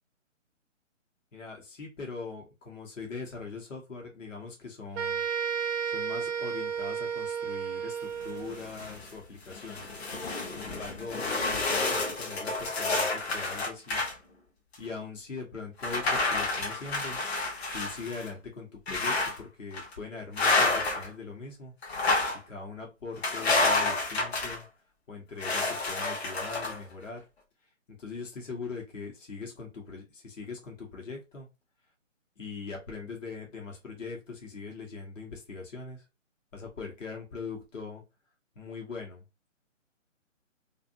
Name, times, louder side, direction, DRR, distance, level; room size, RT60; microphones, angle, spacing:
voice 1, 1.3-5.3 5.8-9.9 10.4-14.0 14.8-17.2 17.7-21.7 22.5-24.6 25.1-27.2 28.0-31.5 32.4-36.0 36.5-38.0 38.6-39.2, left 4 dB, 75° left, 0 dB, 1.1 m, -41 dB
sound 1, 5.0-8.6, right 7 dB, 65° right, 0.5 m, -32 dB
sound 2, 8.2-9.1 9.5-14.1 14.7-14.8 15.8-18.3 18.9-19.4 19.7-19.9 20.4-21.1 21.8-22.4 23.2-24.6 25.4-26.8, left 3 dB, 55° left, 0.9 m, -29 dB
2.6 x 2.5 x 2.5 m, 0.25 s
hypercardioid pair, 150°, 38 cm